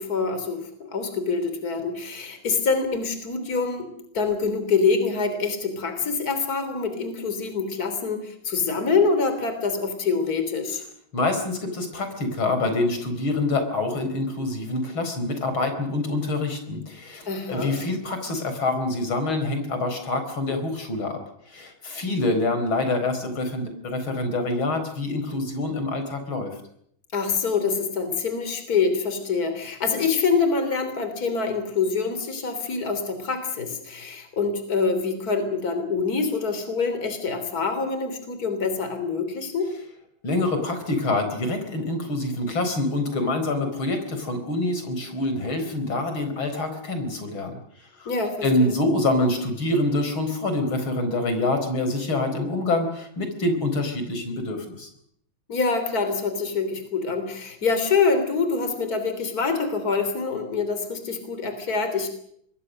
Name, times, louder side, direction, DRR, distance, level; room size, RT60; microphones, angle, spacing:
voice 1, 0.0-3.9 4.1-10.8 17.3-17.8 27.1-39.7 48.1-48.7 55.5-62.1, left 4 dB, 45° left, 8 dB, 3.8 m, -25 dB
voice 2, 11.1-21.2 21.5-26.5 40.2-47.6 48.0-48.1 48.4-54.9, left 2 dB, 80° left, 7 dB, 5.2 m, -26 dB
26.5 x 21.0 x 6.5 m, 0.69 s
omnidirectional pair, 2.2 m